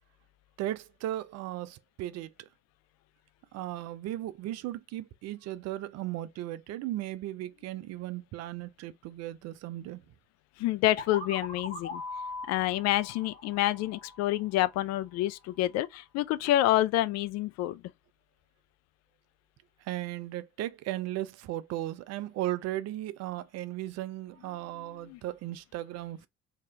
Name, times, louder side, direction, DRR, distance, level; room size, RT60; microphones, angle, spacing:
voice 1, 0.6-2.5 3.5-10.0 19.8-26.3, right 14 dB, 55° right, 0.5 m, -36 dB
voice 2, 10.6-12.0 12.5-17.8 25.1-25.2, left 14 dB, 55° left, 0.4 m, -28 dB
sound 1, 11.0-14.7, left 2 dB, 30° left, 1.7 m, -41 dB
3.3 x 2.9 x 3.3 m
hypercardioid pair, 60°, 32 cm